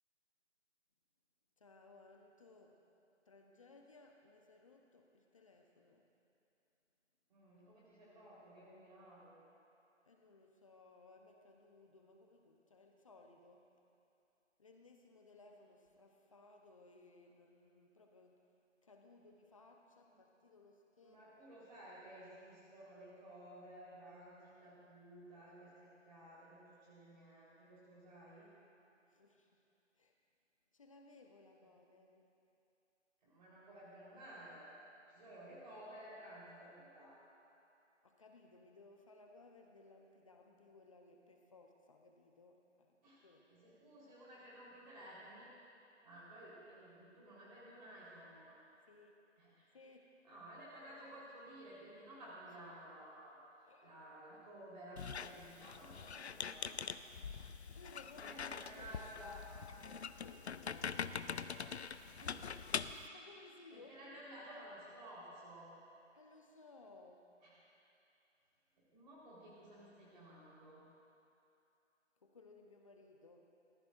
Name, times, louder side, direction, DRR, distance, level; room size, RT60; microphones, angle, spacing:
voice 1, 1.6-2.8 3.3-6.1 10.0-13.7 14.6-18.4 18.8-21.6 29.1-29.6 29.9-30.1 30.7-32.3 38.0-43.5 48.9-49.2 49.7-50.1 53.6-53.9 57.7-59.4 60.0-61.6 63.1-64.7 66.1-67.3 72.2-73.5, left 3 dB, 25° left, 2 dB, 0.9 m, -62 dB
voice 2, 7.3-9.4 21.0-28.5 33.2-34.7 35.1-37.2 43.0-43.2 43.5-45.5 46.0-48.6 49.4-49.7 50.2-53.4 53.8-56.8 57.2-57.5 58.2-59.4 62.2-62.5 63.7-65.7 67.4-67.5 68.8-70.8, right 1 dB, 35° right, -7 dB, 4.2 m, -55 dB
Squeak, 55.0-63.1, left 6 dB, 60° left, 0.6 m, -44 dB
29.5 x 14.5 x 2.6 m, 2.8 s
figure-of-eight pair, 160°, 37 cm